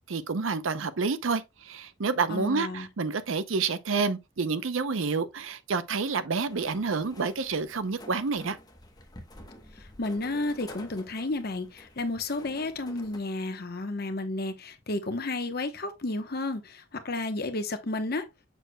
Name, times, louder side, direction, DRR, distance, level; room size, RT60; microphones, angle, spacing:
voice 1, 0.1-8.6, right 4 dB, 75° right, 0.6 m, -29 dB
voice 2, 2.3-2.9 10.0-18.2, left 2 dB, 50° left, 1.0 m, -32 dB
sound 1, 6.5-13.2, left 1 dB, 20° left, 1.0 m, -49 dB
6.8 x 6.4 x 2.2 m
head